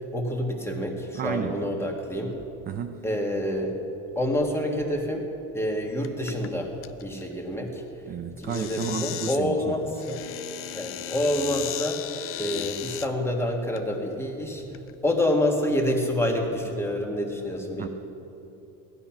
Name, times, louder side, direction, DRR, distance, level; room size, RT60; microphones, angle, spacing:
voice 1, 0.1-2.4 3.0-3.8 4.2-5.2 5.5-6.7 7.0-7.8 8.3-10.2 10.7-14.6 15.0-17.9, left 1 dB, 5° left, 1 dB, 1.8 m, -27 dB
voice 2, 1.1-1.6 2.7-3.0 8.1-9.8 17.8-17.9, right 8 dB, 25° right, 6 dB, 0.5 m, -32 dB
sound 1, 6.0-6.5 6.8-7.2 8.4-9.4 10.0-13.1 13.8-13.9 14.6-14.9, left 12 dB, 40° left, 0.5 m, -35 dB
17.5 x 13.0 x 5.9 m, 2.9 s
cardioid pair, 145°, 36 cm